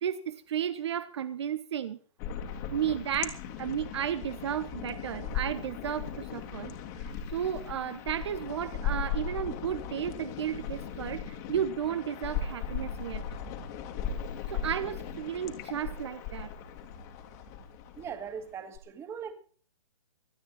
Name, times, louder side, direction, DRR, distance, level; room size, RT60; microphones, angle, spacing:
voice 1, 0.0-2.0 2.7-6.7 7.0-13.2 14.5-16.5, right 9 dB, 60° right, 1.2 m, -33 dB
sound 1, 2.2-18.8, left 6 dB, 35° left, 2.8 m, -37 dB
voice 2, 18.0-19.3, right 7 dB, 15° right, 2.4 m, -39 dB
25.5 x 9.5 x 4.3 m
hypercardioid pair, 145°, 16 cm